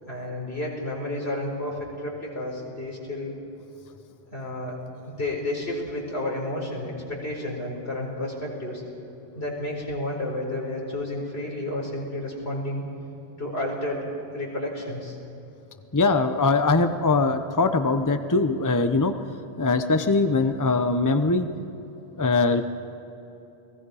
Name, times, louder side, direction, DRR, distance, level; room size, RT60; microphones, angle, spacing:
voice 1, 0.0-3.4 4.3-4.8 5.1-8.8 9.3-12.8 13.4-14.0 14.3-15.2, left 1 dB, 85° left, -1 dB, 4.8 m, -31 dB
voice 2, 15.9-19.1 19.6-21.5 22.1-22.6, left 3 dB, 20° left, 8 dB, 0.8 m, -22 dB
30.0 x 19.5 x 4.9 m, 3.0 s
omnidirectional pair, 1.0 m